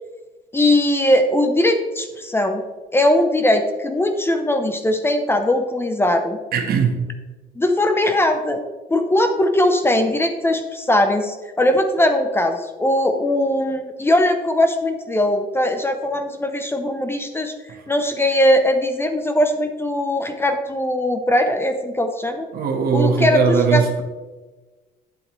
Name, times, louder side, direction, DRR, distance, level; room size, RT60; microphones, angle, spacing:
voice 1, 0.5-2.6 2.9-6.4 7.6-8.6 8.9-17.5 17.9-22.5 22.9-23.8, left 1 dB, 15° left, 6 dB, 0.7 m, -20 dB
voice 2, 6.5-7.0 22.5-24.0, right 6 dB, 65° right, 3 dB, 1.4 m, -19 dB
8.9 x 7.5 x 3.1 m, 1.2 s
cardioid pair, 110°, 17 cm